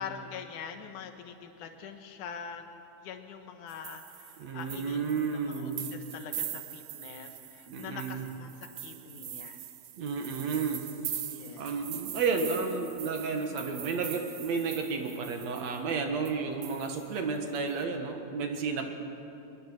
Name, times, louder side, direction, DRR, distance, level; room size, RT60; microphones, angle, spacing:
voice 1, 0.0-9.6 11.3-11.7 17.0-17.2, left 7 dB, 90° left, 6 dB, 2.7 m, -44 dB
sound 1, 3.7-15.9 16.2-16.3 16.6-17.8, right 11 dB, 90° right, 1.0 m, -42 dB
voice 2, 4.4-5.9 7.7-8.2 10.0-10.9 11.6-18.9, right 5 dB, 65° right, 4 dB, 2.7 m, -32 dB
23.0 x 22.0 x 6.3 m, 2.8 s
omnidirectional pair, 3.4 m